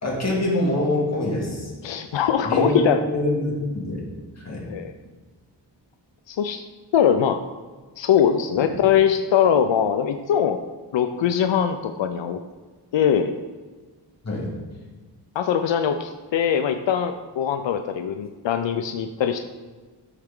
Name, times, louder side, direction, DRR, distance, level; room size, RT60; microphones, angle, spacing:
voice 1, 0.0-1.7 2.4-4.0 4.4-4.7 8.6-8.8 14.2-14.5, left 1 dB, 35° left, -3 dB, 2.5 m, -25 dB
voice 2, 1.8-3.0 4.7-4.9 6.3-6.6 6.9-7.4 8.0-10.6 10.9-12.4 12.9-13.3 15.4-19.4, left 8 dB, 90° left, 8 dB, 0.5 m, -21 dB
12.5 x 4.5 x 3.7 m, 1.4 s
wide cardioid pair, 105°, 43 cm